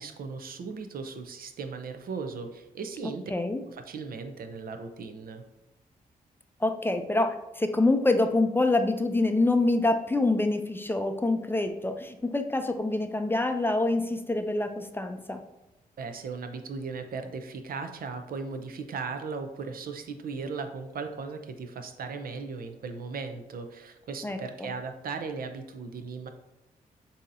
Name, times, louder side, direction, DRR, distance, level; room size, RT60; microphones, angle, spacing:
voice 1, 0.0-3.3 3.7-5.4 16.0-26.3, right 4 dB, 70° right, 7 dB, 0.5 m, -37 dB
voice 2, 3.3-3.6 6.6-15.4 24.2-24.7, left 2 dB, 15° left, 7 dB, 0.4 m, -26 dB
7.0 x 2.8 x 2.6 m, 0.95 s
cardioid pair, 70°, 16 cm